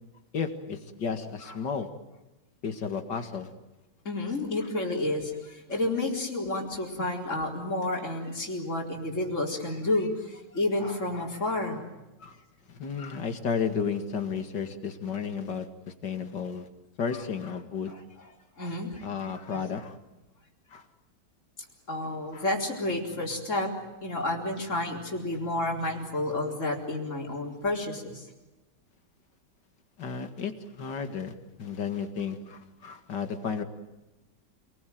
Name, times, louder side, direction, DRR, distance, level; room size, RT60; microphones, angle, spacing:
voice 1, 0.3-1.9 2.6-3.5 12.2-12.4 12.7-16.7 17.0-17.9 19.0-20.0 20.7-20.8 22.3-22.5 30.0-31.3 31.6-33.6, left 6 dB, 80° left, 8 dB, 2.6 m, -33 dB
voice 2, 4.0-11.8 17.9-18.0 18.6-19.0 21.9-23.7 24.0-28.3, left 2 dB, 45° left, 1 dB, 4.7 m, -30 dB
28.0 x 20.0 x 9.4 m, 1.1 s
omnidirectional pair, 1.9 m